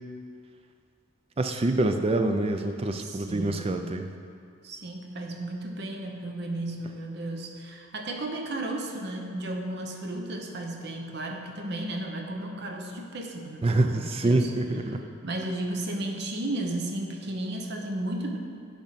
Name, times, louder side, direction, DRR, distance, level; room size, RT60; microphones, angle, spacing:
voice 1, 1.4-4.1 13.6-15.0, right 2 dB, 30° right, 6 dB, 0.4 m, -26 dB
voice 2, 3.0-4.1 4.6-14.5 14.9-18.4, right 1 dB, 50° right, 3 dB, 0.8 m, -34 dB
10.5 x 3.5 x 5.8 m, 2.3 s
head